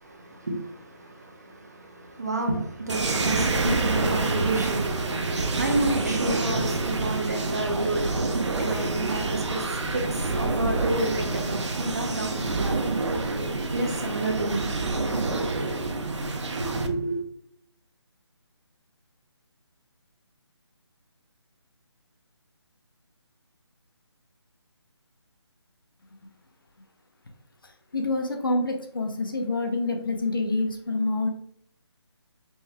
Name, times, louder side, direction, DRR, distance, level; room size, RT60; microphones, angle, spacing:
voice 1, 0.0-12.8 13.7-14.7 16.5-17.2, right 2 dB, 35° right, 0.7 m, -30 dB
sound 1, 2.9-16.9, right 3 dB, 80° right, 0.7 m, -27 dB
voice 2, 27.9-31.3, left 2 dB, 50° left, 0.7 m, -27 dB
5.4 x 3.1 x 2.3 m
hypercardioid pair, 175°, 15 cm